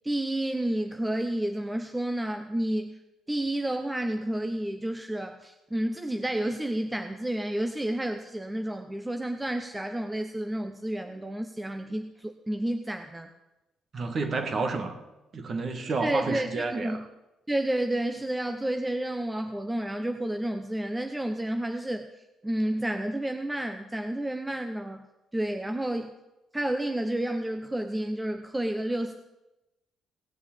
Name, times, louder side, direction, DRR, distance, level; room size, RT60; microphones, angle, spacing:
voice 1, 0.0-3.0 3.3-13.3 16.0-17.0 17.5-22.1 22.4-25.1 25.3-26.1 26.5-29.1, right 1 dB, 10° right, 0.7 m, -30 dB
voice 2, 13.9-15.0 15.3-17.0, right 3 dB, 35° right, 1.6 m, -30 dB
17.5 x 7.0 x 8.8 m
cardioid pair, 145°, 0 cm